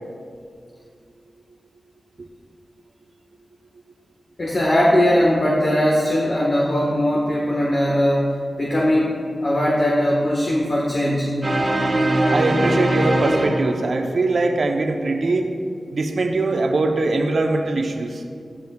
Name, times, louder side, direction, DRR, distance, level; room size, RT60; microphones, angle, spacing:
voice 1, 4.4-9.1 9.4-11.4, equal, 50° left, -3 dB, 1.4 m, -19 dB
sound 1, 11.4-14.1, right 1 dB, 35° right, 1.4 m, -21 dB
voice 2, 12.3-15.5 15.9-18.2, right 2 dB, 65° right, 3 dB, 0.8 m, -21 dB
13.5 x 10.5 x 2.4 m, 2.2 s
cardioid pair, 60°, 0 cm